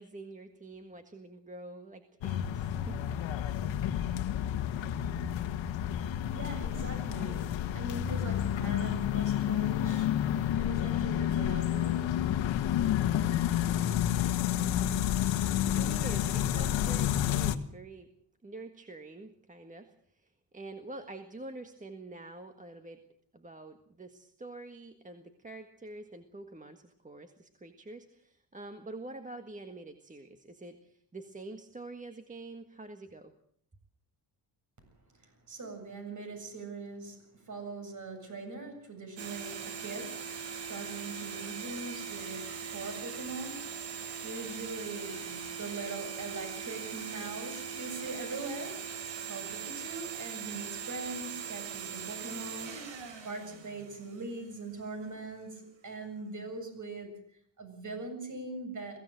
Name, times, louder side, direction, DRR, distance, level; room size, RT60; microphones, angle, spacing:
voice 1, 0.0-3.0 15.8-18.1 18.4-20.3 20.5-23.0 23.3-33.3, right 2 dB, 15° right, 6 dB, 1.6 m, -46 dB
sound 1, 2.2-17.5, left 11 dB, 85° left, 1.6 m, -30 dB
voice 2, 5.8-12.4 35.2-52.8 53.2-57.2 57.6-59.0, right 3 dB, 40° right, 5 dB, 7.7 m, -42 dB
sound 2, 39.2-54.4, right 7 dB, 75° right, 4.0 m, -40 dB
23.0 x 16.5 x 7.8 m, 0.63 s
cardioid pair, 135°, 45 cm